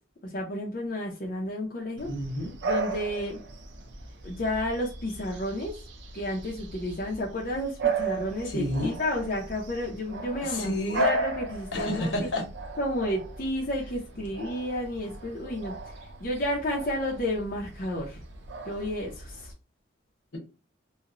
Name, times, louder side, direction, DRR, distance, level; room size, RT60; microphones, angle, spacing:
voice 1, 0.2-2.1 2.6-3.4 4.2-5.7 6.1-12.1 12.8-15.9 16.2-18.2 18.7-19.5, left 1 dB, 45° left, 0.5 m, -31 dB
voice 2, 2.0-2.6 8.4-9.0 10.4-11.1 11.7-12.4, left 1 dB, 75° left, 0.9 m, -30 dB
Bark / Bird vocalization bird call bird song, 2.0-19.5, right 3 dB, 65° right, 0.4 m, -36 dB
2.9 x 2.0 x 2.4 m
head